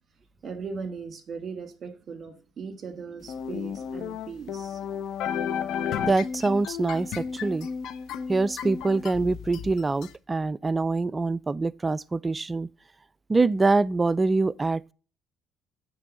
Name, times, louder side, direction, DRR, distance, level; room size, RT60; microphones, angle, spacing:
voice 1, 0.4-5.0, right 5 dB, 45° right, 1.7 m, -38 dB
sound 1, 3.3-10.1, left 7 dB, 70° left, 0.7 m, -33 dB
voice 2, 6.0-7.7 8.3-12.7 13.3-14.9, right 3 dB, 25° right, 0.3 m, -25 dB
8.9 x 3.4 x 6.3 m
supercardioid pair, 75°, 0 cm